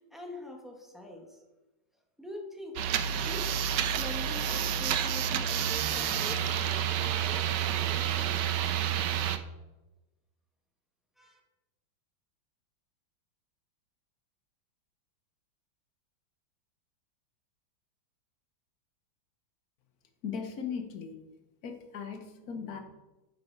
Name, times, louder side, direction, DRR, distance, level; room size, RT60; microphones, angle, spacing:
voice 1, 0.0-1.4 2.2-8.3 11.2-11.4, equal, ahead, 1 dB, 1.1 m, -45 dB
sound 1, 2.8-9.4, right 9 dB, 70° right, 1.2 m, -29 dB
voice 2, 20.2-21.1 21.6-22.8, left 6 dB, 55° left, 5 dB, 1.5 m, -38 dB
9.6 x 7.0 x 4.7 m, 1.1 s
omnidirectional pair, 2.2 m